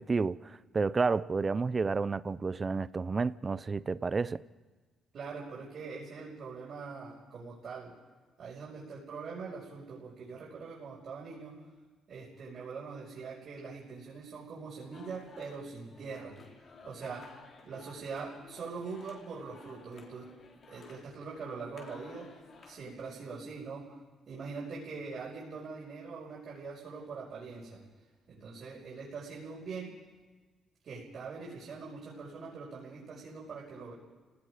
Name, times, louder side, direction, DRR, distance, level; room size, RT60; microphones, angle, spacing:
voice 1, 0.0-4.4, right 4 dB, 30° right, 0.6 m, -30 dB
voice 2, 5.1-7.9 8.4-11.7 12.1-16.4 16.8-17.3 17.6-20.4 20.7-22.4 22.6-24.0 24.3-27.8 28.3-30.0 30.8-33.9, right 4 dB, 60° right, 5.8 m, -43 dB
sound 1, 14.9-23.1, left 4 dB, 55° left, 3.7 m, -55 dB
30.0 x 18.5 x 5.1 m
cardioid pair, 90°, 0 cm